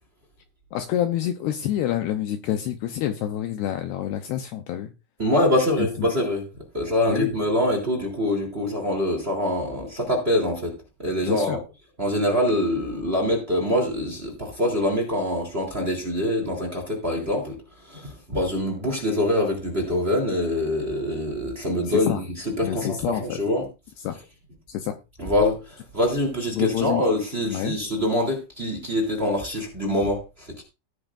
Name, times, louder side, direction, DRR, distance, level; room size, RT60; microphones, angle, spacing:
voice 1, 0.7-4.9 5.8-6.1 7.1-7.3 11.2-11.6 21.8-22.2 22.6-23.4 24.0-24.2 24.7-25.0 26.5-27.0 27.5-27.8, left 11 dB, 90° left, 2.3 m, -27 dB
voice 2, 5.2-6.4 6.7-11.6 12.0-23.7 25.2-30.6, left 1 dB, 15° right, 2.5 m, -25 dB
18.5 x 8.9 x 2.6 m
omnidirectional pair, 5.8 m